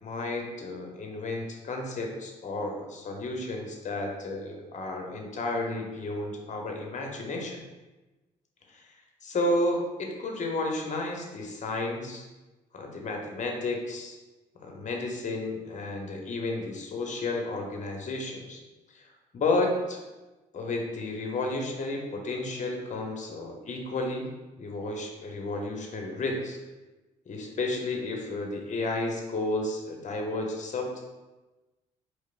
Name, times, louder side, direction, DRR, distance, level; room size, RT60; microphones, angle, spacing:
voice 1, 0.0-7.6 8.7-8.8 9.2-12.2 12.7-14.2 14.6-18.6 18.9-19.0 19.3-20.0 20.5-24.3 24.6-26.6 27.3-31.0, left 2 dB, 40° left, 2 dB, 0.8 m, -32 dB
4.6 x 2.0 x 2.4 m, 1.1 s
hypercardioid pair, 45°, 19 cm